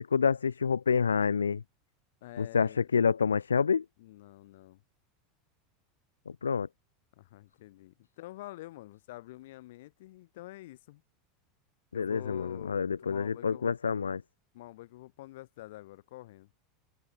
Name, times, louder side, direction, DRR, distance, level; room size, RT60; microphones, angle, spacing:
voice 1, 0.0-1.6 2.4-3.8 6.3-6.7 11.9-14.2, left 6 dB, 85° left, 0.6 m, -28 dB
voice 2, 2.2-2.9 4.0-4.8 7.2-11.0 11.9-13.7 14.5-16.5, left 17 dB, 65° left, 5.2 m, -47 dB
hypercardioid pair, 85°, 0 cm